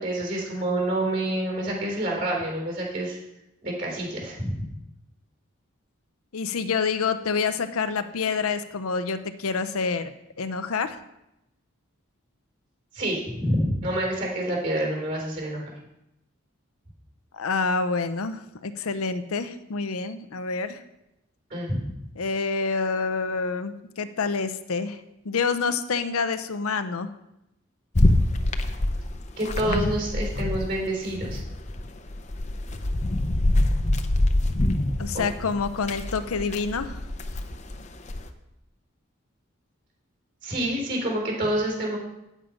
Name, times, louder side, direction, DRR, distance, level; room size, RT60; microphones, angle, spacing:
voice 1, 0.0-3.2 3.6-4.7 12.9-15.6 21.5-21.8 29.4-31.4 35.1-35.3 40.4-42.0, right 1 dB, 50° right, -1 dB, 4.0 m, -27 dB
voice 2, 6.3-10.1 10.4-11.0 17.3-20.8 22.2-25.0 25.2-27.1 35.0-37.0, left 4 dB, 85° left, 10 dB, 0.6 m, -27 dB
sound 1, 27.9-30.8 31.1-38.3, left 1 dB, 30° left, 0.6 m, -25 dB
9.1 x 7.5 x 5.2 m, 0.87 s
head